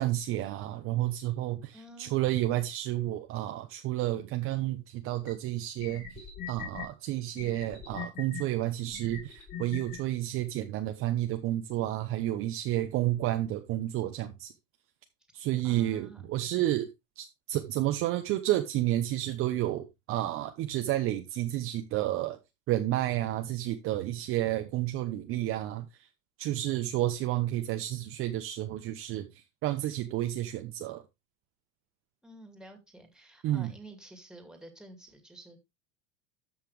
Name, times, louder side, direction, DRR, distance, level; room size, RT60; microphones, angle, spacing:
voice 1, 0.0-14.5 15.3-16.9 17.2-22.4 22.7-26.1 26.4-31.0 33.4-33.7, right 14 dB, 35° right, 0.9 m, -31 dB
voice 2, 1.7-2.4 15.6-16.3 32.2-35.6, right 2 dB, ahead, 2.3 m, -50 dB
sound 1, 5.3-5.4 5.8-6.9 7.4-8.4 8.9-10.0, left 8 dB, 30° left, 3.6 m, -41 dB
13.0 x 5.7 x 3.2 m
supercardioid pair, 135°, 38 cm